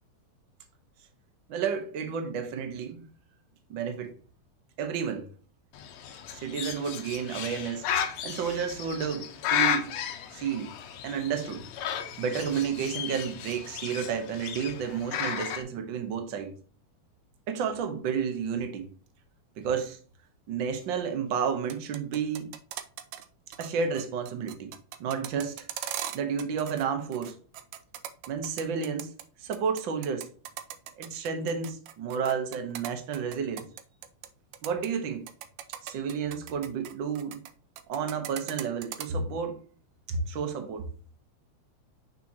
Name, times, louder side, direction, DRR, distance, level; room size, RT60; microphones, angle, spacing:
voice 1, 1.5-3.1 3.7-4.2 4.8-5.3 6.3-7.9 8.2-9.9 10.3-10.8 11.0-11.7 12.2-16.5 17.5-18.9 19.6-20.0 20.5-22.6 23.6-24.7 25.0-25.7 26.1-27.4 28.3-30.3 31.0-33.7 34.6-35.3 35.8-37.4 37.9-39.6 40.1-40.9, right 6 dB, 55° right, 1.4 m, -31 dB
Bird, 5.7-15.6, left 9 dB, 70° left, 1.9 m, -34 dB
sound 1, 21.5-23.2 23.5-23.7 23.9-26.8 27.1-29.2 29.5-34.3 34.5-34.9 35.3-37.5 37.8-39.1, right 11 dB, 90° right, 2.0 m, -39 dB
6.8 x 6.0 x 2.8 m
omnidirectional pair, 3.3 m